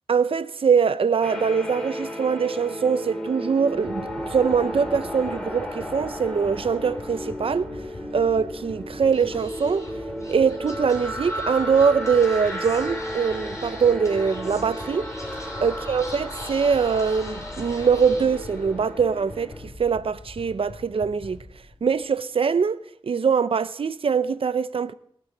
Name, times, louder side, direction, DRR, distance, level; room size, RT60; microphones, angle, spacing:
voice 1, 0.1-7.7 8.1-9.9 10.3-15.1 15.6-21.4 21.8-24.9, right 6 dB, 70° right, 0.6 m, -23 dB
sound 1, 1.2-19.6, equal, 10° left, 3.7 m, -34 dB
sound 2, 3.7-22.0, left 2 dB, 75° left, 4.2 m, -43 dB
Speech / Whispering, 9.1-18.9, left 1 dB, 35° left, 4.3 m, -44 dB
18.5 x 9.3 x 7.7 m
wide cardioid pair, 90°, 10 cm